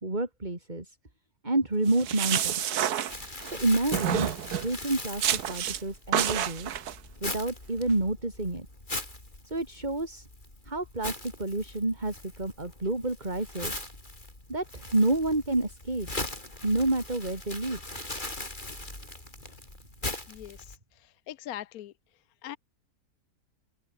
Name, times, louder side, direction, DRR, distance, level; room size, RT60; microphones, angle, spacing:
voice 1, 0.0-1.0 1.4-2.8 3.4-4.3 4.6-6.7 7.2-8.7 9.4-10.3 10.7-13.8 14.5-16.1 16.6-17.9, right 2 dB, 30° right, 3.9 m, -29 dB
sound 1, 1.9-3.6 3.9-4.7 5.2-5.8 6.1-6.9, right 10 dB, 85° right, 1.5 m, -29 dB
Crumpling crinkling, 3.1-20.8, left 1 dB, 30° left, 4.9 m, -40 dB
voice 2, 21.3-21.9 22.4-22.6, left 12 dB, 75° left, 1.2 m, -39 dB
open air
omnidirectional pair, 1.6 m